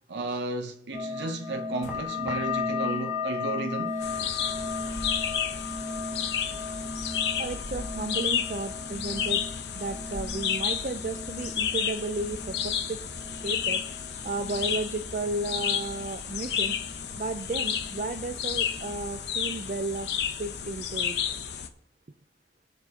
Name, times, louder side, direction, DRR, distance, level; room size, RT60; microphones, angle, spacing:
voice 1, 0.1-4.0, right 2 dB, 75° right, 0.7 m, -33 dB
sound 1, 0.9-16.1 16.4-17.2 17.5-18.2 18.6-18.9, left 4 dB, 5° right, 1.6 m, -36 dB
sound 2, 1.8-3.0 3.9-5.8 6.2-8.5 9.1-9.3 9.8-11.0 11.5-11.9 12.3-13.6, left 1 dB, 40° left, 1.1 m, -46 dB
sound 3, 4.0-21.7, left 8 dB, 70° left, 0.8 m, -32 dB
voice 2, 7.4-9.4 9.7-13.0 13.4-13.8 14.2-16.8 17.1-20.1 20.4-21.2, right 2 dB, 45° right, 0.4 m, -33 dB
20.5 x 6.9 x 2.9 m
head